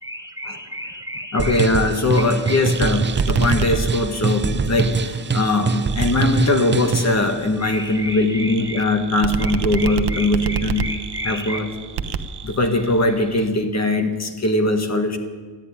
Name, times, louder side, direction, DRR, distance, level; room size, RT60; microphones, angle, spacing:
voice 1, 0.0-1.5 2.5-2.6 7.6-8.8 9.4-11.6, equal, 10° right, 5 dB, 1.2 m, -32 dB
voice 2, 1.3-10.9 11.2-11.7 12.4-15.2, left 2 dB, 35° left, 6 dB, 1.6 m, -21 dB
sound 1, 1.4-7.2, right 4 dB, 25° right, 0.7 m, -23 dB
sound 2, 2.2-13.5, right 6 dB, 65° right, 0.9 m, -31 dB
13.5 x 10.0 x 9.9 m, 1.4 s
wide cardioid pair, 115°, 43 cm